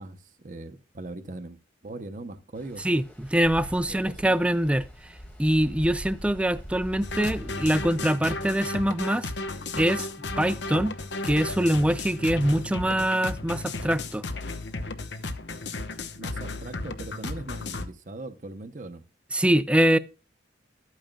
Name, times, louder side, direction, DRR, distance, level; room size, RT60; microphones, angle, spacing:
voice 1, 0.0-2.9 3.9-4.4 16.1-19.0, right 2 dB, 45° right, 0.7 m, -40 dB
Stream, 2.5-8.2, equal, 10° left, 1.4 m, -43 dB
voice 2, 2.8-4.9 5.4-9.3 9.8-10.1 10.4-10.9 11.2-14.2 19.3-20.0, right 1 dB, 5° right, 0.4 m, -24 dB
sound 1, 7.0-17.9, left 2 dB, 70° left, 0.9 m, -34 dB
12.5 x 8.9 x 2.2 m
head